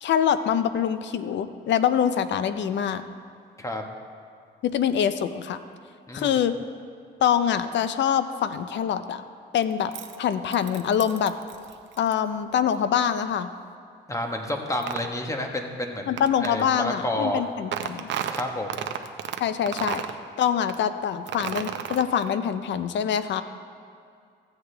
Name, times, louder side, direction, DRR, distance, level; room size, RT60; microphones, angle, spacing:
voice 1, 0.0-3.0 4.6-5.6 6.1-6.5 7.2-9.2 9.5-9.9 10.2-11.3 12.0-13.5 16.1-18.1 19.4-20.0 20.4-23.4, left 8 dB, 65° left, 12 dB, 0.6 m, -24 dB
sound 1, 9.6-12.1 14.8-15.1 16.2-16.6 17.7-19.4 19.7-20.2 20.7-20.8 21.3-22.3, right 9 dB, 70° right, 0.6 m, -32 dB
voice 2, 14.1-17.4 18.3-18.8, left 1 dB, 15° left, 3 dB, 1.2 m, -30 dB
14.5 x 8.1 x 3.3 m, 2.4 s
cardioid pair, 90°, 20 cm